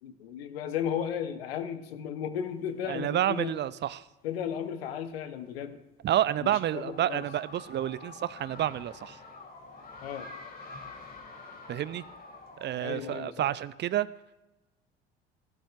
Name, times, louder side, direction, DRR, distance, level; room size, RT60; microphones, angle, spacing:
voice 1, 0.0-3.5 4.2-5.8 6.4-7.2 10.0-10.3 12.8-13.5, left 8 dB, 75° left, 10 dB, 1.0 m, -35 dB
sound 1, 2.4-3.4 4.0-4.1 4.4-4.5 6.0-13.2, left 3 dB, 30° left, 2.2 m, -47 dB
voice 2, 2.8-4.1 6.0-9.2 11.7-12.0 12.6-14.1, right 12 dB, 35° right, 18 dB, 0.5 m, -29 dB
15.5 x 12.0 x 2.5 m, 1.0 s
hypercardioid pair, 60°, 30 cm